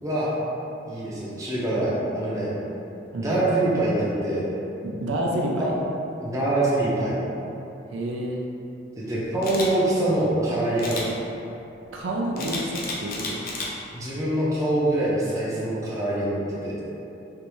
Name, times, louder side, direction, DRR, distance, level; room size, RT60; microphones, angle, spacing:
voice 1, 0.9-2.5 3.2-4.5 5.6-5.7 6.2-7.1 9.0-11.1 13.9-16.8, right 1 dB, 15° right, -8 dB, 0.6 m, -24 dB
voice 2, 4.8-5.7 7.9-8.4 11.9-13.4, right 1 dB, 85° right, -2 dB, 0.5 m, -28 dB
Camera, 9.4-9.7 10.8-11.1 12.4-13.7 14.2-14.4, left 3 dB, 50° left, 0.5 m, -32 dB
3.4 x 2.6 x 3.0 m, 2.8 s
head